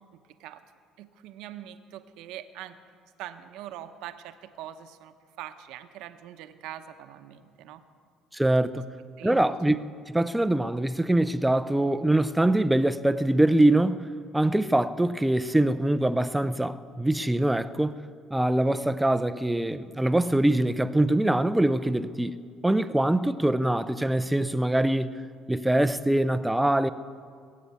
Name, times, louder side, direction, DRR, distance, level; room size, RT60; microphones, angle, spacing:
voice 1, 1.0-2.8 3.2-7.8 9.2-9.4, right 12 dB, 80° right, 0.9 m, -43 dB
voice 2, 8.3-8.9 9.2-9.8 10.1-14.1 14.3-18.0 18.3-22.4 22.6-25.2 25.5-26.9, right 1 dB, 5° right, 0.4 m, -23 dB
20.0 x 8.5 x 8.1 m
cardioid pair, 130°, 0 cm